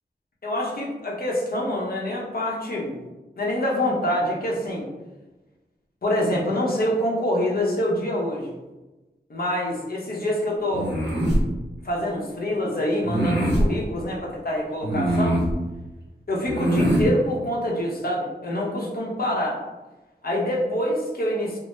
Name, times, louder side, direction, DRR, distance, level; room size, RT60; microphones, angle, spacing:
voice 1, 0.4-3.0 3.4-4.9 6.0-8.6 9.3-10.9 11.8-15.4 16.3-19.6 20.2-21.6, left 1 dB, 55° left, -3 dB, 0.8 m, -26 dB
sound 1, 10.7-11.4 13.0-13.7 14.8-15.5 16.4-17.1, right 1 dB, 75° right, 1.2 m, -22 dB
3.6 x 2.0 x 2.6 m, 1.1 s
wide cardioid pair, 80°, 18 cm